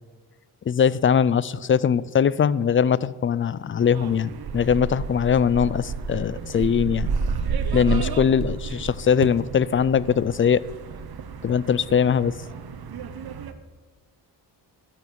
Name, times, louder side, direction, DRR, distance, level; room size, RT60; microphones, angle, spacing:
voice 1, 0.7-7.1 7.7-10.6 11.4-12.4, left 7 dB, 30° left, 20 dB, 0.4 m, -21 dB
sound 1, 3.8-13.5, right 5 dB, 60° right, 1.0 m, -31 dB
13.0 x 8.4 x 6.9 m, 1.4 s
cardioid pair, 95°, 43 cm